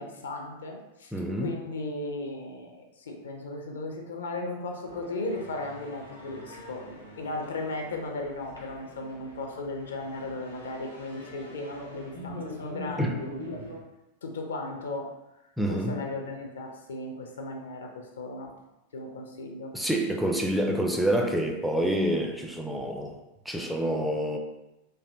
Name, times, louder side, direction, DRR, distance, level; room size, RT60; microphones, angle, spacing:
voice 1, 0.0-1.1 1.4-13.3 14.2-15.1 15.7-18.5 18.9-19.7, left 2 dB, 65° left, 2 dB, 0.5 m, -36 dB
voice 2, 1.1-1.5 13.0-13.1 15.6-16.0 19.7-23.2 23.5-24.4, right 1 dB, ahead, 1 dB, 0.3 m, -27 dB
sound 1, 4.8-13.8, left 1 dB, 90° left, 0.9 m, -43 dB
3.2 x 2.6 x 2.5 m, 0.95 s
figure-of-eight pair, 90°, 0 cm